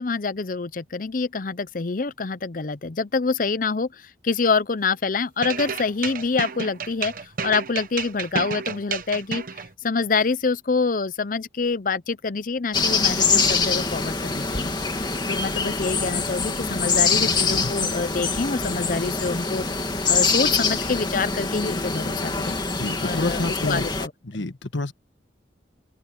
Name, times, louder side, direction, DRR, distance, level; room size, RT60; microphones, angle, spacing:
voice 1, 0.0-7.1 7.4-9.4 9.8-14.7 15.3-19.6 20.1-22.6 23.0-24.5, left 4 dB, 45° left, 0.6 m, -26 dB
sound 1, 5.4-9.7, right 6 dB, 50° right, 1.1 m, -31 dB
sound 2, 12.7-24.1, left 4 dB, 25° left, 2.5 m, -24 dB
voice 2, 17.1-17.7 22.8-23.8 24.2-24.9, left 2 dB, 90° left, 1.4 m, -29 dB
head